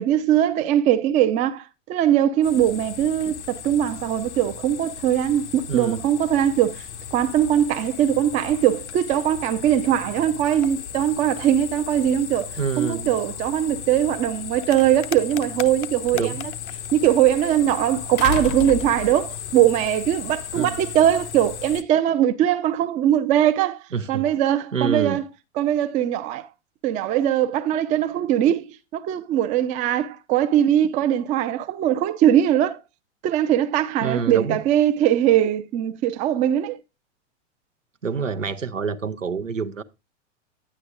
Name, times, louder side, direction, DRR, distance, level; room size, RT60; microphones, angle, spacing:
voice 1, 0.0-6.8 7.1-16.5 16.9-23.8 24.1-25.2 25.6-26.5 26.8-32.8 33.2-36.8, right 11 dB, 20° right, 0.4 m, -21 dB
sound 1, 2.4-21.8, left 9 dB, 65° left, 0.6 m, -36 dB
voice 2, 5.7-6.0 12.6-13.1 16.1-16.4 20.5-20.8 23.9-24.3 24.7-25.2 34.0-34.6 38.0-39.8, right 6 dB, 85° right, 0.7 m, -27 dB
sound 2, 14.9-15.0 18.2-19.5 20.8-20.9, left 8 dB, 30° left, 0.6 m, -29 dB
9.9 x 8.4 x 2.4 m
figure-of-eight pair, 95°, 37 cm